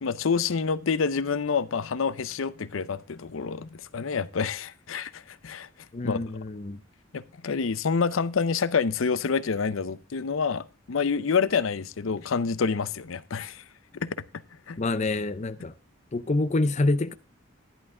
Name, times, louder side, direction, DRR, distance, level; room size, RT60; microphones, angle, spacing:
voice 1, 0.0-5.7 6.0-6.2 7.1-13.6 14.0-14.1 14.7-14.8, left 5 dB, 85° left, 0.6 m, -27 dB
voice 2, 5.9-6.8 14.8-15.7 16.1-17.1, left 2 dB, 35° left, 0.5 m, -26 dB
11.0 x 11.0 x 3.7 m
head